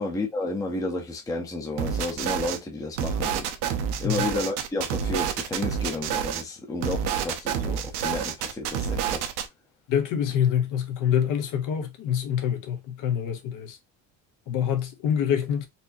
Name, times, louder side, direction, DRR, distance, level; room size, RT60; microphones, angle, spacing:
voice 1, 0.0-9.3, left 2 dB, 10° left, 0.7 m, -32 dB
sound 1, 1.8-2.6 3.0-6.4 6.8-9.5, right 8 dB, 75° right, 0.9 m, -28 dB
voice 2, 9.9-13.8 14.5-15.7, left 9 dB, 50° left, 0.8 m, -26 dB
4.3 x 2.8 x 2.6 m
cardioid pair, 170°, 40 cm